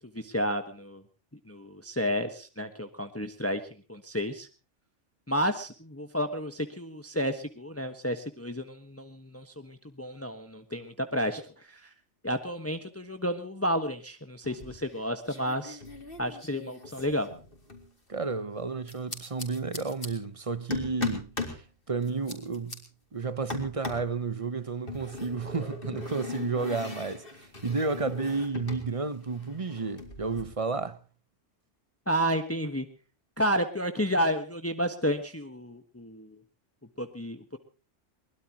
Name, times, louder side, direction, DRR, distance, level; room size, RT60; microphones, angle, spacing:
voice 1, 0.1-1.0 1.5-3.6 3.9-4.5 5.3-11.9 12.2-15.8 16.2-17.3 32.1-32.8 33.4-36.3 37.0-37.6, equal, 10° left, 1.3 m, -31 dB
mysounds-Nolwenn-ciseaux, 14.4-15.0 15.3-17.9 18.9-20.1 20.7-21.6 22.0-22.8 23.5-24.1 24.9-28.9 29.1-30.4, left 3 dB, 50° left, 3.8 m, -39 dB
voice 2, 18.1-22.8 23.1-31.0, right 4 dB, 30° right, 1.0 m, -32 dB
23.0 x 21.0 x 3.0 m
omnidirectional pair, 1.2 m